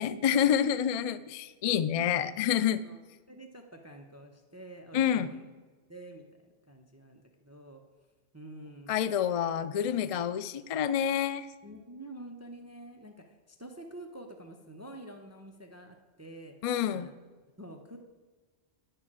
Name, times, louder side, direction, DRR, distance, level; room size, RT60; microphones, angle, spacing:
voice 1, 0.0-2.8 4.9-5.3 8.9-11.5 16.6-17.1, left 9 dB, 70° left, 15 dB, 0.3 m, -28 dB
voice 2, 3.3-5.4 5.9-6.2 6.7-7.8 8.3-8.9 11.6-16.5 16.9-17.1 17.6-18.0, right 1 dB, 15° right, 4 dB, 0.6 m, -47 dB
10.0 x 6.7 x 7.4 m, 1.3 s
omnidirectional pair, 1.2 m